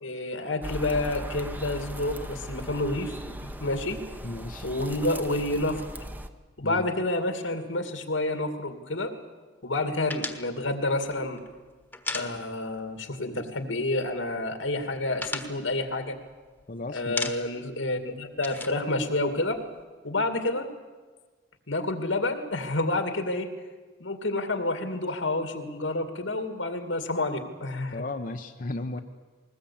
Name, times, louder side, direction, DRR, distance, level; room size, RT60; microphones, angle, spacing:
voice 1, 0.0-3.1 3.4-4.0 4.6-5.8 6.6-9.1 9.6-11.4 12.1-16.2 16.9-19.6 20.0-20.7 21.7-23.5 24.0-28.0, left 2 dB, 85° left, 7 dB, 2.5 m, -29 dB
sound 1, 0.6-6.3, right 1 dB, 10° right, 0.9 m, -38 dB
voice 2, 4.2-4.7 6.6-6.9 16.7-17.3 27.9-29.0, left 2 dB, 45° left, 5 dB, 0.8 m, -35 dB
sound 2, 10.1-12.9 13.1-13.3 13.6-14.3 14.6-16.6 17.0-17.7 18.0-19.8, left 2 dB, 10° left, 1.3 m, -37 dB
21.0 x 19.5 x 8.7 m, 1.4 s
head